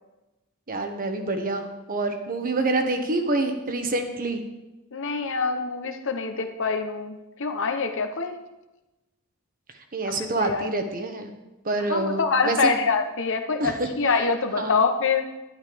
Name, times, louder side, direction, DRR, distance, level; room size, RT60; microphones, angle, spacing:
voice 1, 0.7-4.4 9.9-11.3 11.6-12.8 13.6-14.3 14.6-14.8, right 2 dB, 40° right, 5 dB, 1.3 m, -27 dB
voice 2, 4.9-8.3 10.0-10.7 11.9-15.3, left 4 dB, 60° left, 6 dB, 1.1 m, -25 dB
11.5 x 10.5 x 5.3 m, 1.0 s
head